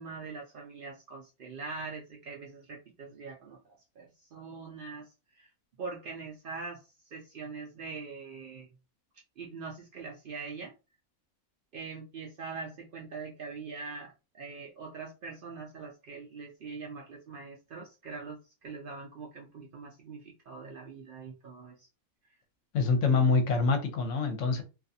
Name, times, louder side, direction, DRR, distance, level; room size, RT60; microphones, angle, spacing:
voice 1, 0.0-5.5 5.8-8.7 9.4-10.7 11.7-21.9, right 4 dB, 75° right, 0.5 m, -43 dB
voice 2, 22.7-24.6, left 4 dB, 65° left, 0.9 m, -25 dB
2.5 x 2.3 x 2.6 m
omnidirectional pair, 1.5 m